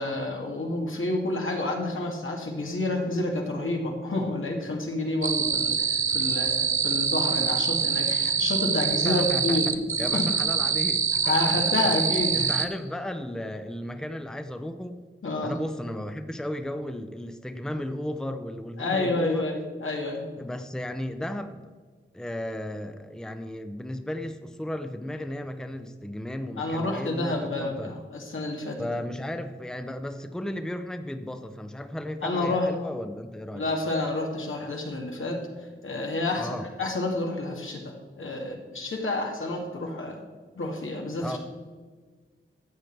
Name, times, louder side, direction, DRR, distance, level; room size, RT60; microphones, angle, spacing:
voice 1, 0.0-9.7 10.1-10.2 11.2-12.5 15.2-15.6 18.8-20.2 26.6-28.9 32.2-32.7 33.5-35.4 35.8-40.2 40.6-41.4, left 2 dB, 80° left, 1 dB, 2.0 m, -29 dB
sound 1, 5.2-12.7, right 6 dB, 85° right, 0.8 m, -25 dB
voice 2, 9.0-11.6 11.9-15.0 15.4-19.5 20.4-21.6 22.1-27.9 28.8-33.7 36.3-36.7 41.2-41.4, left 1 dB, 5° left, 8 dB, 0.7 m, -35 dB
13.0 x 7.9 x 4.6 m, 1.5 s
wide cardioid pair, 75°, 20 cm